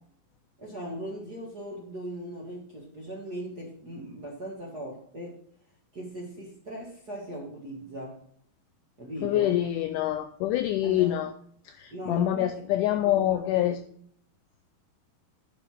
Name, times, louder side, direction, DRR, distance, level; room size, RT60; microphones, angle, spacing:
voice 1, 0.6-5.4 5.9-8.2 9.0-9.6 10.8-11.3 11.9-12.5 13.0-13.7, right 1 dB, 45° right, -2 dB, 1.4 m, -39 dB
voice 2, 9.2-11.3 11.7-13.8, left 13 dB, 90° left, 10 dB, 1.8 m, -26 dB
11.0 x 4.2 x 6.1 m, 0.63 s
omnidirectional pair, 4.2 m